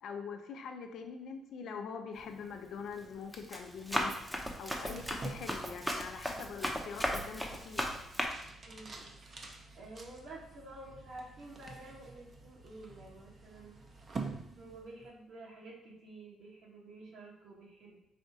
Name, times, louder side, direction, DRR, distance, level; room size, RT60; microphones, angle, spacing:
voice 1, 0.0-4.1 4.6-7.9, left 6 dB, 70° left, 5 dB, 0.5 m, -43 dB
Run, 2.2-2.5 3.0-8.3, equal, 5° right, 0.7 m, -36 dB
sound 1, 4.6-15.2, right 3 dB, 40° right, 0.7 m, -48 dB
voice 2, 8.7-13.8 14.6-18.0, right 2 dB, 65° right, -3 dB, 1.4 m, -51 dB
4.1 x 2.6 x 4.7 m, 0.79 s
cardioid pair, 90°, 0 cm